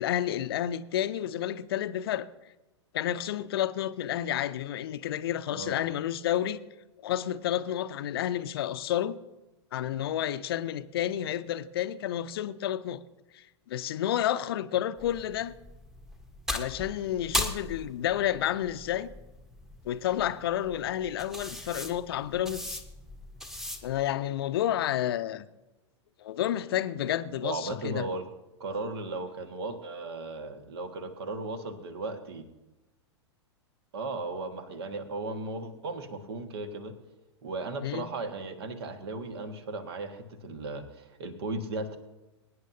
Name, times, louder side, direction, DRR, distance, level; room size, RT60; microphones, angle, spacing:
voice 1, 0.0-2.3 2.9-6.6 7.0-9.1 9.7-13.0 13.3-15.5 16.5-19.1 19.8-22.8 23.8-25.5 26.2-28.0 37.8-38.1, left 11 dB, 55° left, 0.6 m, -30 dB
sound 1, 15.0-24.1, left 1 dB, ahead, 1.1 m, -38 dB
voice 2, 27.4-28.3 28.6-32.5 33.9-36.9 37.4-42.0, right 2 dB, 60° right, 1.6 m, -36 dB
23.5 x 9.6 x 2.7 m
figure-of-eight pair, 95°, 15 cm